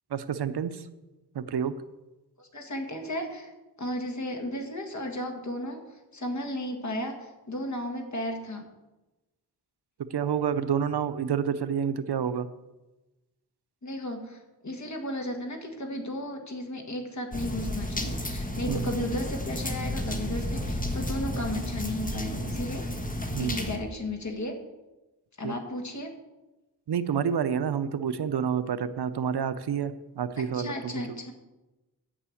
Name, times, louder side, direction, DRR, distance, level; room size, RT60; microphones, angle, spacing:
voice 1, 0.1-0.8 1.3-1.7 10.1-12.5 18.7-18.9 23.3-23.6 25.4-25.5 26.9-30.9, right 7 dB, 70° right, 12 dB, 0.7 m, -28 dB
voice 2, 2.4-3.5 3.8-5.8 6.1-8.7 13.8-22.8 23.4-24.6 25.4-26.1 30.4-31.3, left 1 dB, 40° left, 3 dB, 1.8 m, -34 dB
sound 1, 17.3-23.8, left 1 dB, 20° left, 1.3 m, -32 dB
9.9 x 5.7 x 8.5 m, 1.1 s
wide cardioid pair, 105°, 41 cm